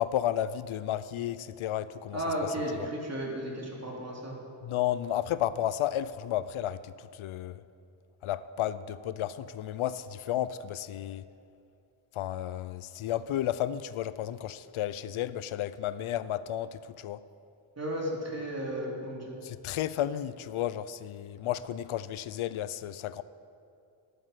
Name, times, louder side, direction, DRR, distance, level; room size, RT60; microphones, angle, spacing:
voice 1, 0.0-2.9 4.6-7.6 8.2-11.2 12.1-17.2 19.4-23.2, left 11 dB, 80° left, 0.6 m, -33 dB
voice 2, 2.1-4.4 17.8-19.4, right 1 dB, 30° right, 3.5 m, -34 dB
11.5 x 9.5 x 8.2 m
cardioid pair, 85°, 48 cm